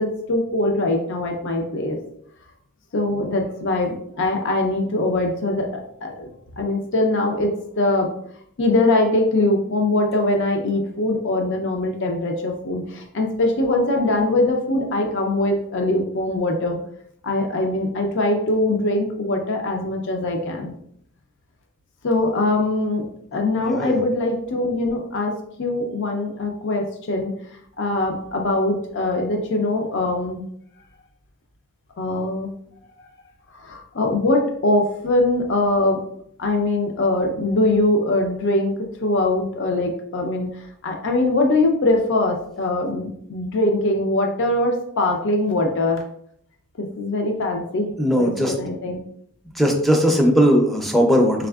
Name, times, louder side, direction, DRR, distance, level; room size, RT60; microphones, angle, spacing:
voice 1, 0.0-2.0 2.9-8.1 8.6-16.8 17.2-20.7 22.0-23.0 23.3-25.3 25.6-27.3 27.8-30.5 32.0-32.5 33.5-36.0 36.4-38.8 39.0-46.0 46.8-49.0, left 2 dB, 55° left, 3 dB, 0.5 m, -22 dB
voice 2, 23.6-24.0 48.0-48.5 49.5-51.5, equal, ahead, 2 dB, 0.5 m, -18 dB
4.1 x 3.5 x 2.3 m, 0.68 s
head